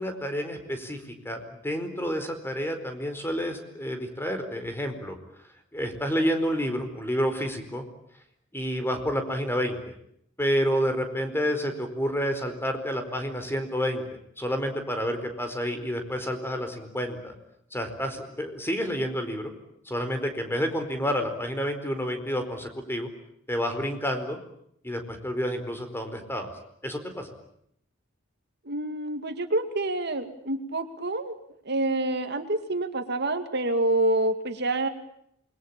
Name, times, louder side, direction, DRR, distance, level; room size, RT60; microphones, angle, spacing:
voice 1, 0.0-5.2 5.7-7.8 8.5-9.8 10.4-14.0 14.4-17.3 17.7-19.5 19.8-23.1 23.5-24.4 24.8-26.5 26.8-27.3, equal, 10° left, 7 dB, 4.6 m, -29 dB
voice 2, 28.7-31.3 31.7-34.9, right 2 dB, 55° right, 8 dB, 2.4 m, -27 dB
28.0 x 22.0 x 8.8 m, 0.73 s
head